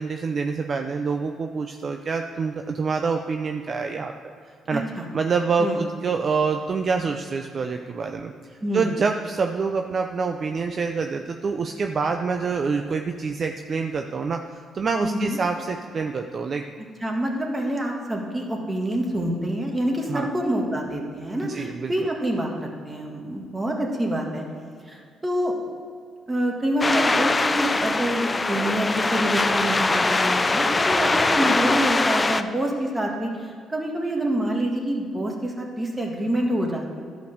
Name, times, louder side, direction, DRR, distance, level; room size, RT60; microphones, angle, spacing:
voice 1, 0.0-4.1 4.7-4.8 5.1-16.6 20.1-20.3 21.4-21.9, right 5 dB, 45° right, 5 dB, 0.5 m, -26 dB
voice 2, 4.7-5.1 5.6-5.8 8.6-8.9 15.0-15.4 17.0-24.4 24.9-25.5 26.3-36.9, right 1 dB, 20° right, 0 dB, 1.8 m, -26 dB
sound 1, 26.8-32.4, left 3 dB, 20° left, 0.5 m, -22 dB
12.0 x 5.2 x 6.5 m, 2.3 s
cardioid pair, 90°, 0 cm